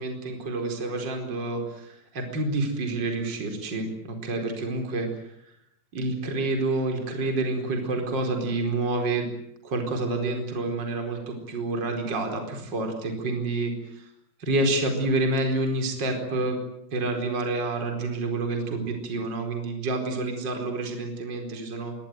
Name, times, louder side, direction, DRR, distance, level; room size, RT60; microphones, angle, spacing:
voice 1, 0.0-5.1 5.9-9.3 9.6-14.1 14.4-16.6 16.9-21.9, right 2 dB, 25° right, 4 dB, 4.8 m, -28 dB
26.0 x 22.5 x 9.3 m, 0.77 s
omnidirectional pair, 4.9 m